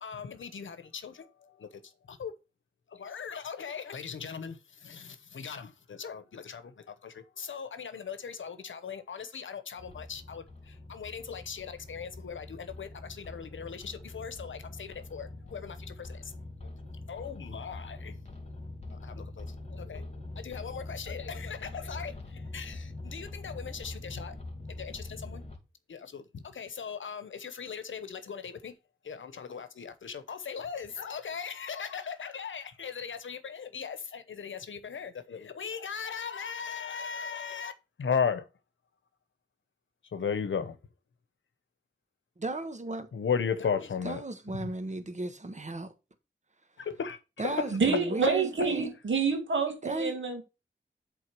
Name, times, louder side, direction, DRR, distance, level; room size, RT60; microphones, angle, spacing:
voice 1, 0.0-1.1 2.1-2.3 3.0-4.6 4.8-6.6 7.0-10.4 10.9-16.2 17.1-18.1 19.4-19.5 19.8-20.1 20.4-22.1 22.5-24.3 24.8-25.4 25.9-26.2 26.5-28.7 29.1-37.7 38.0-38.4 40.1-40.7 43.1-44.2 47.0-47.2 47.4-47.6, left 6 dB, 85° left, 0.9 m, -37 dB
sound 1, 9.8-25.6, left 2 dB, 35° left, 2.4 m, -43 dB
voice 2, 42.4-43.1 44.0-45.9 47.4-48.9 49.8-50.2, right 2 dB, 40° right, 1.3 m, -35 dB
voice 3, 47.7-50.4, right 5 dB, 80° right, 1.9 m, -28 dB
7.8 x 3.8 x 6.0 m
cardioid pair, 60°, 19 cm